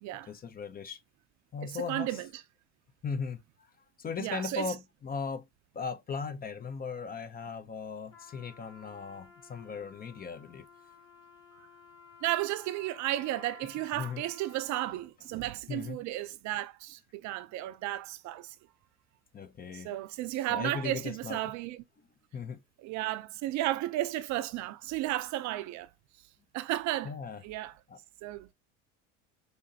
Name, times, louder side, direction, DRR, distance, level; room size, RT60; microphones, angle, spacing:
voice 1, 0.3-1.0 1.5-2.2 3.0-3.4 4.0-5.4 5.7-10.7 13.6-14.2 14.9-15.0 15.7-16.0 19.3-19.9 20.5-21.6 22.3-22.6 27.0-28.0, left 5 dB, 25° left, 0.6 m, -38 dB
voice 2, 1.6-2.3 4.2-4.8 11.6-11.7 12.2-18.6 19.7-21.8 22.8-25.9 26.5-27.1 27.4-27.7 28.2-28.5, right 15 dB, 55° right, 0.5 m, -34 dB
Trumpet, 8.1-15.1, left 6 dB, 40° left, 1.9 m, -55 dB
5.1 x 2.7 x 2.7 m
hypercardioid pair, 85°, 35 cm